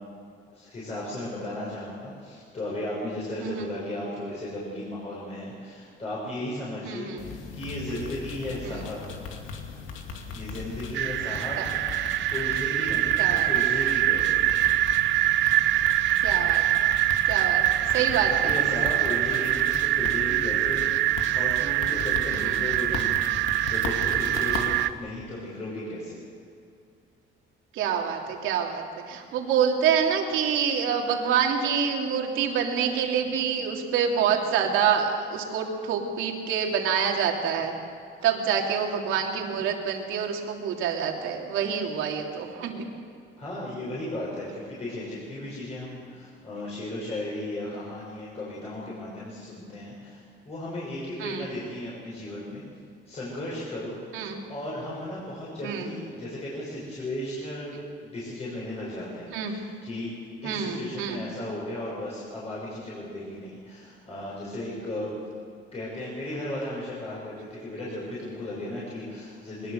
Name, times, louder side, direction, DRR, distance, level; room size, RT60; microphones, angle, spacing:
voice 1, 0.5-9.0 10.3-11.6 12.3-14.5 17.8-23.2 23.7-24.7 25.0-26.2 43.4-52.6 53.1-54.0 54.5-60.1 60.4-65.2 65.7-69.7, left 1 dB, 30° left, -6 dB, 6.3 m, -35 dB
voice 2, 6.8-7.2 11.6-11.7 13.2-13.5 16.2-16.6 17.3-17.7 17.9-18.3 22.3-22.6 27.8-37.7 38.2-42.8 51.2-51.5 54.1-54.4 55.6-55.9 59.3-59.5 60.4-61.2, right 7 dB, 80° right, 1 dB, 3.2 m, -26 dB
sound 1, 7.2-24.9, left 5 dB, 80° left, 2.6 m, -38 dB
sound 2, 10.9-24.9, right 14 dB, 65° right, 0.6 m, -24 dB
22.0 x 20.5 x 6.8 m, 2.5 s
cardioid pair, 135°, 20 cm